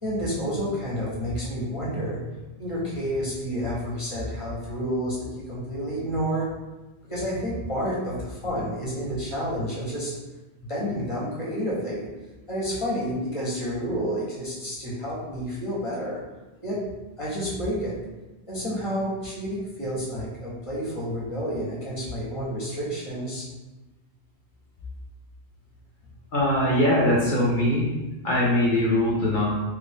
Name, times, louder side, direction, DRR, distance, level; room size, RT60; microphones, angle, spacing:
voice 1, 0.0-2.2 2.6-6.5 7.1-10.1 10.6-12.1 12.5-16.2 16.6-16.8 17.2-18.0 18.5-23.5, equal, 30° left, -6 dB, 1.0 m, -30 dB
voice 2, 26.3-27.9 28.2-29.5, left 1 dB, 55° left, -5 dB, 0.8 m, -21 dB
3.2 x 2.5 x 3.5 m, 1.1 s
omnidirectional pair, 1.1 m